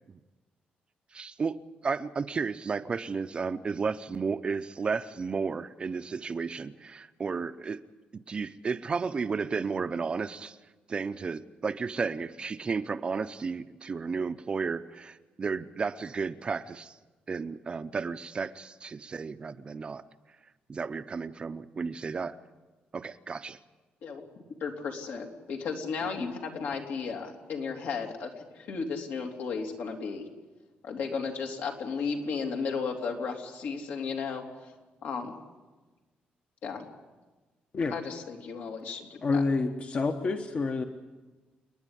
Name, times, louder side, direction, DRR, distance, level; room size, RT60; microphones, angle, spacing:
voice 1, 1.1-7.8 8.1-10.6 10.9-17.0 17.3-20.0 20.7-22.4 22.9-23.6, right 5 dB, 30° right, 11 dB, 0.7 m, -33 dB
voice 2, 24.6-30.3 30.8-34.7 35.0-35.4 36.6-36.8 37.9-39.4, left 5 dB, 75° left, 1 dB, 3.2 m, -34 dB
voice 3, 39.2-40.8, left 4 dB, 40° left, 6 dB, 1.1 m, -28 dB
29.5 x 10.0 x 9.9 m, 1.2 s
cardioid pair, 130°, 3 cm